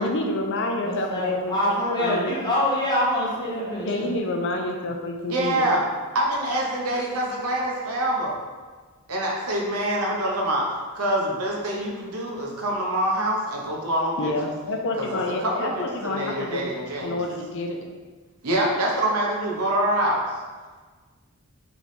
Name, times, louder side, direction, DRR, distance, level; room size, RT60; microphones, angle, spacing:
voice 1, 0.0-1.6 2.0-2.3 3.8-5.7 14.2-17.8, left 2 dB, 55° left, 2 dB, 0.4 m, -28 dB
voice 2, 0.8-4.2, equal, 20° left, -7 dB, 1.0 m, -25 dB
voice 3, 5.3-5.8 6.1-8.3 9.1-14.3 15.0-17.2 18.4-20.2, right 1 dB, 80° right, -2 dB, 0.8 m, -25 dB
3.4 x 3.1 x 4.0 m, 1.4 s
head